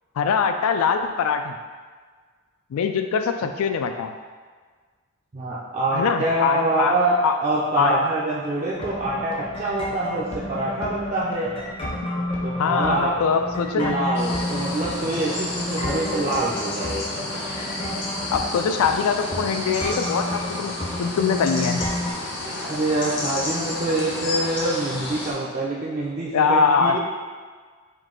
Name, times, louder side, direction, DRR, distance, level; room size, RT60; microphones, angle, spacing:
voice 1, 0.2-1.6 2.7-4.1 5.9-7.4 7.8-8.0 12.6-14.0 18.3-21.8 26.3-27.0, left 6 dB, 85° left, 7 dB, 0.3 m, -23 dB
voice 2, 5.3-11.5 12.4-13.1 13.8-17.0 22.6-27.0, right 2 dB, 30° right, -7 dB, 0.4 m, -25 dB
sound 1, 8.7-22.1, left 1 dB, 25° left, 0.5 m, -31 dB
sound 2, 14.1-25.3, left 2 dB, 55° left, 0.8 m, -31 dB
3.7 x 2.7 x 3.7 m, 1.5 s
head